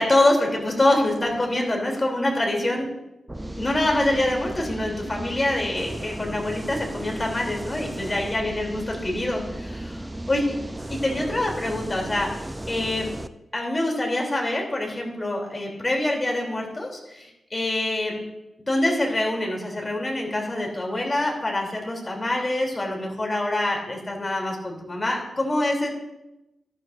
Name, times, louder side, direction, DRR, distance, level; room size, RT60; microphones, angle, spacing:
voice 1, 0.0-2.9 3.4-10.4 11.0-13.1 13.5-18.2 18.7-25.9, left 1 dB, 25° left, 0 dB, 2.9 m, -25 dB
sound 1, 3.3-13.3, right 1 dB, 15° right, 0.5 m, -35 dB
13.0 x 12.5 x 2.5 m, 0.95 s
wide cardioid pair, 90°, 0 cm